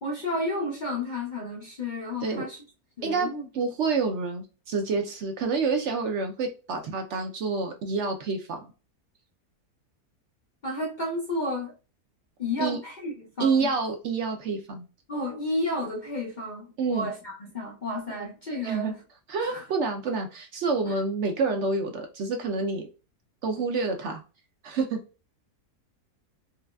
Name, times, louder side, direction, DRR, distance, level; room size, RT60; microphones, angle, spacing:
voice 1, 0.0-2.6 3.0-3.4 10.6-11.8 12.4-13.7 15.1-19.0 19.4-19.6 20.9-21.0, left 1 dB, 75° left, 0.4 m, -32 dB
voice 2, 3.0-8.7 12.6-12.8 13.4-14.9 16.8-17.1 18.2-18.3 18.6-18.9 19.3-22.8 23.4-24.2 24.6-25.0, right 4 dB, 70° right, 0.7 m, -28 dB
4.7 x 2.3 x 2.2 m
omnidirectional pair, 1.7 m